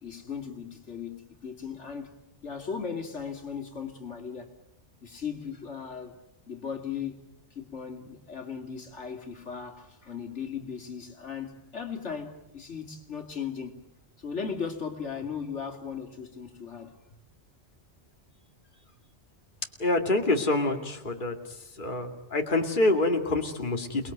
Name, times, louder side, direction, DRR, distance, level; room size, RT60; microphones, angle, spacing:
voice 1, 0.0-2.1 2.4-4.5 5.0-6.2 6.5-7.2 7.5-13.7 14.2-17.0, left 6 dB, 85° left, 2.9 m, -37 dB
voice 2, 19.8-21.4 21.8-24.1, left 2 dB, 45° left, 2.5 m, -26 dB
29.0 x 20.5 x 9.2 m
omnidirectional pair, 1.2 m